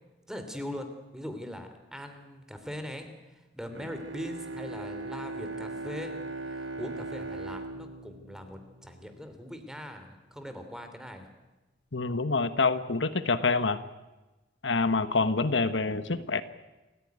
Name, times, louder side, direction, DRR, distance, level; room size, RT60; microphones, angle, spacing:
voice 1, 0.3-11.3, equal, 5° right, 7 dB, 3.0 m, -41 dB
Bowed string instrument, 3.7-9.3, right 3 dB, 80° right, 2.5 m, -39 dB
voice 2, 11.9-13.8 14.6-16.4, left 3 dB, 80° left, 11 dB, 1.2 m, -26 dB
28.0 x 15.5 x 9.6 m, 1.1 s
head